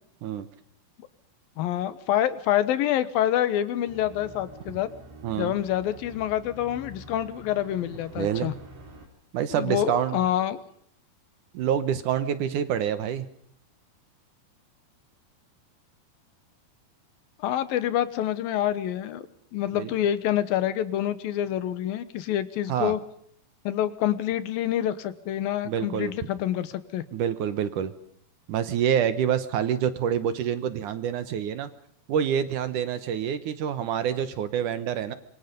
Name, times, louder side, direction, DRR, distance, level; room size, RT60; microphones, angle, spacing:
voice 1, 1.6-4.9 5.4-8.5 9.5-10.6 17.4-19.2 19.5-23.0 23.7-27.0, left 11 dB, 75° left, 14 dB, 2.8 m, -27 dB
sound 1, 3.9-9.1, right 1 dB, 80° right, 6.2 m, -47 dB
voice 2, 5.2-5.5 8.2-8.5 9.3-10.2 11.5-13.3 19.7-19.9 22.7-22.9 25.7-26.1 27.1-27.9 28.5-31.7 32.1-35.1, right 9 dB, 65° right, 12 dB, 2.3 m, -27 dB
26.5 x 24.0 x 5.2 m, 0.67 s
omnidirectional pair, 4.3 m